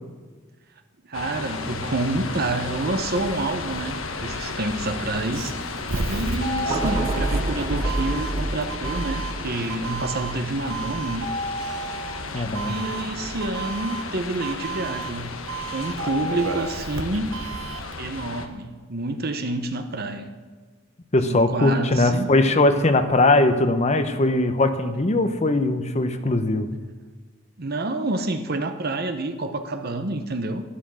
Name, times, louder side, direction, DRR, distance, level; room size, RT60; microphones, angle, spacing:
voice 1, 1.0-5.5 6.1-11.3 12.7-15.3 15.7-17.3 18.0-20.3 21.3-22.3 27.6-30.6, right 2 dB, 50° right, 7 dB, 0.9 m, -28 dB
sound 1, 1.1-18.5, left 4 dB, 85° left, 1.3 m, -34 dB
Doorbell, 5.2-18.0, right 3 dB, 75° right, 1.1 m, -32 dB
sound 2, 6.7-13.0 13.4-13.6, right 1 dB, 25° right, 0.6 m, -30 dB
voice 2, 12.3-12.7 21.1-26.7, left 2 dB, 35° left, 9 dB, 0.8 m, -20 dB
13.0 x 11.5 x 6.3 m, 1.4 s
head